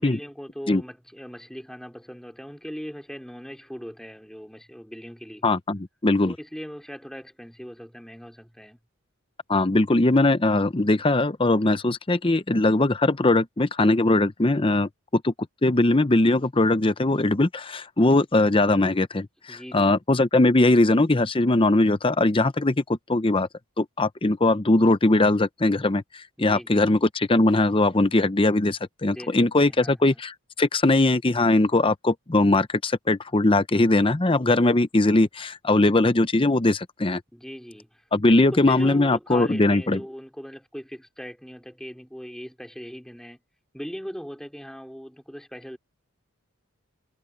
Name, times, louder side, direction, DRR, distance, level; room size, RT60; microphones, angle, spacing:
voice 1, 0.0-5.4 6.3-8.8 19.5-19.9 26.4-26.9 29.1-30.1 37.3-43.4 43.7-45.8, equal, ahead, 2.9 m, -39 dB
voice 2, 5.4-6.3 9.5-15.3 15.6-23.5 23.8-37.2 38.1-40.0, left 2 dB, 25° left, 0.7 m, -21 dB
head